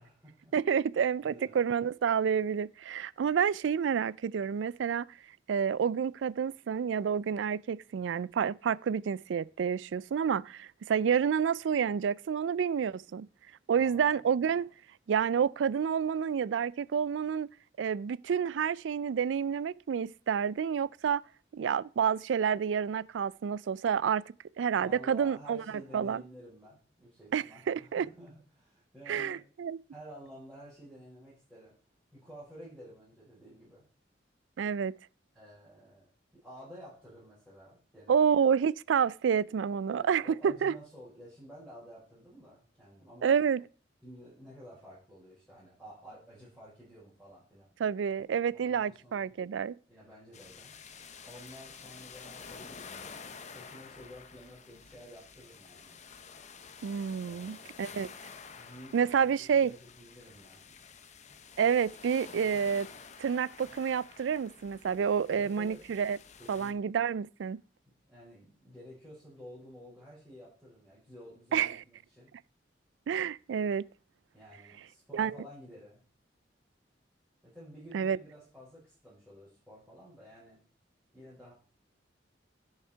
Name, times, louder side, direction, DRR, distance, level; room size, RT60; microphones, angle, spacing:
voice 1, 0.0-0.5 1.2-1.6 13.7-14.2 24.8-29.4 29.9-31.7 32.1-33.9 35.3-38.2 39.9-43.3 44.0-47.7 48.5-49.3 49.9-50.7 51.2-52.9 53.3-56.0 57.2-58.0 58.5-60.8 65.3-65.8 66.4-66.9 68.1-72.3 74.3-76.0 77.4-80.6 81.1-81.5, equal, 5° right, 5.7 m, -52 dB
voice 2, 0.5-5.1 5.5-13.3 13.7-14.7 15.1-17.5 17.8-21.2 21.5-24.2 24.6-25.6 25.9-26.2 27.3-28.1 29.1-29.8 34.6-34.9 38.1-40.7 43.2-43.6 47.8-49.8 56.8-58.1 58.9-59.7 61.6-62.9 63.2-66.2 66.5-67.6 71.5-71.8 73.1-73.8 75.1-75.3 77.9-78.2, right 7 dB, 85° right, 0.4 m, -29 dB
sound 1, 50.3-66.7, left 5 dB, 40° left, 0.9 m, -50 dB
10.0 x 6.5 x 4.5 m
head